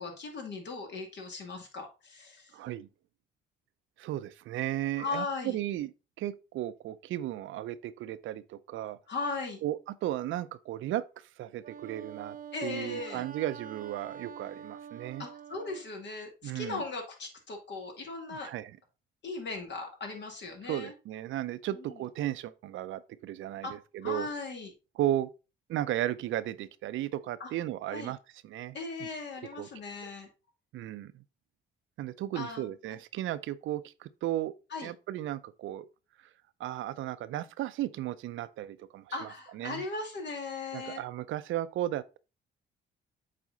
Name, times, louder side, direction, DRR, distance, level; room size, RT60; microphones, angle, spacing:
voice 1, 0.0-2.5 5.0-5.6 9.1-9.6 12.5-13.2 15.2-18.5 19.2-20.9 21.7-22.0 23.6-23.7 24.0-24.7 27.4-27.5 27.9-28.1 28.7-30.3 32.3-33.0 34.7-34.9 39.1-41.0, left 3 dB, 60° left, 2.3 m, -38 dB
voice 2, 2.5-2.9 4.0-9.0 9.6-12.4 12.6-15.2 16.4-16.8 18.4-18.7 20.6-24.3 25.0-25.3 25.7-28.2 28.4-29.1 29.6-29.7 30.7-31.2 32.0-34.5 34.8-35.9 36.6-39.3 39.5-39.8 40.7-42.2, right 13 dB, 80° right, 0.6 m, -35 dB
Wind instrument woodwind instrument, 11.6-15.9, right 7 dB, 45° right, 0.8 m, -46 dB
7.5 x 4.2 x 3.9 m
cardioid pair, 90°, 20 cm